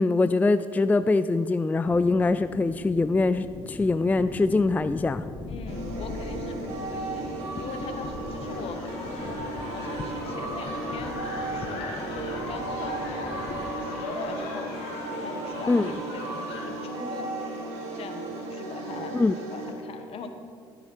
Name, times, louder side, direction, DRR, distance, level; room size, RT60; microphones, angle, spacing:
voice 1, 0.0-5.3 15.7-15.9 19.1-19.3, left 3 dB, 15° left, 12 dB, 0.3 m, -23 dB
sound 1, 1.8-13.7, left 3 dB, 45° left, 0.9 m, -40 dB
voice 2, 5.5-9.3 9.7-11.2 11.5-14.7 15.2-17.3 17.9-19.1 19.5-20.3, left 5 dB, 60° left, 6 dB, 1.2 m, -42 dB
sound 2, 5.7-19.7, right 2 dB, 80° right, 2.1 m, -35 dB
sound 3, 8.4-16.7, left 2 dB, 85° left, 1.9 m, -38 dB
13.5 x 7.6 x 4.6 m, 2.4 s
supercardioid pair, 70°, 11 cm